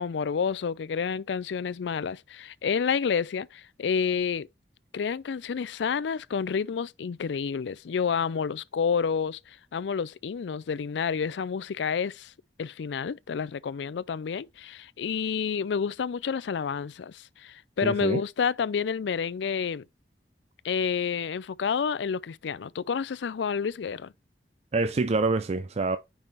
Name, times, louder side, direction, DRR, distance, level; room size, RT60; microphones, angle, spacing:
voice 1, 0.0-4.5 4.9-12.3 12.6-19.8 20.6-24.1, left 6 dB, 80° left, 0.4 m, -29 dB
voice 2, 17.8-18.2 24.7-26.0, right 3 dB, 35° right, 0.4 m, -26 dB
5.5 x 5.4 x 4.5 m
head